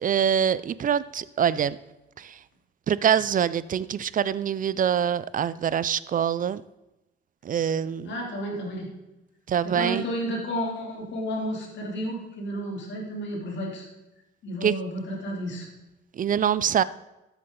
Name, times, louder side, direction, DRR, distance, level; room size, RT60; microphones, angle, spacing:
voice 1, 0.0-1.8 2.2-2.4 2.9-6.6 7.4-8.1 9.5-10.0 14.6-14.8 16.2-16.8, right 8 dB, 45° right, 18 dB, 0.5 m, -24 dB
voice 2, 8.0-8.9 9.6-13.9 14.4-15.7, equal, 65° left, -1 dB, 3.2 m, -32 dB
13.5 x 8.1 x 3.8 m, 0.96 s
cardioid pair, 90°, 20 cm